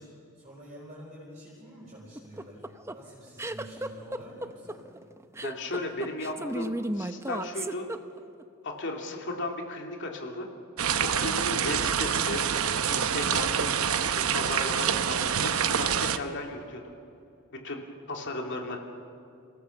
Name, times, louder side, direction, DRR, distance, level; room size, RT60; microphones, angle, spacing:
voice 1, 0.0-2.6 2.9-4.8, equal, 30° right, -7 dB, 5.1 m, -47 dB
sound 1, 2.2-8.4, right 1 dB, 10° right, 0.7 m, -34 dB
voice 2, 5.4-7.9 8.6-10.5 11.0-12.4 12.8-16.9 17.5-18.8, left 2 dB, 55° left, 2 dB, 2.7 m, -35 dB
sound 2, 10.8-16.2, right 7 dB, 70° right, 0.9 m, -26 dB
28.5 x 18.0 x 7.1 m, 2.7 s
head